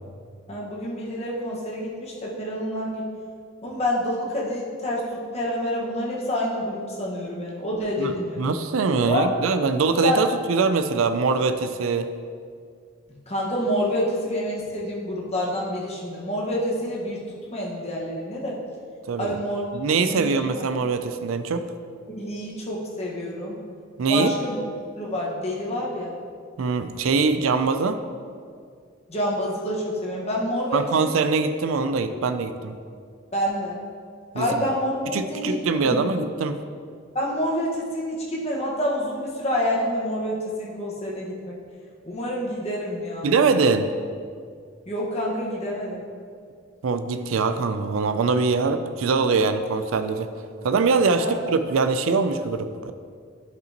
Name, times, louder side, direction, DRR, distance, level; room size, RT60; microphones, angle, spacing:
voice 1, 0.5-3.0 3.6-8.5 9.1-9.3 10.0-10.2 13.3-17.2 17.5-18.6 19.2-20.4 22.1-23.6 24.1-24.5 25.0-26.2 29.1-31.1 31.8-32.0 33.3-33.8 34.3-36.0 37.1-41.6 42.0-43.3 44.9-46.1 51.2-51.3, equal, 35° left, -4 dB, 1.4 m, -28 dB
voice 2, 8.0-12.1 19.1-19.3 19.7-21.6 24.0-24.3 26.6-28.0 30.7-32.7 34.3-34.5 35.1-36.6 43.2-43.9 46.8-50.3 50.6-52.9, right 4 dB, 85° right, 10 dB, 0.4 m, -23 dB
11.0 x 5.3 x 2.9 m, 2.2 s
head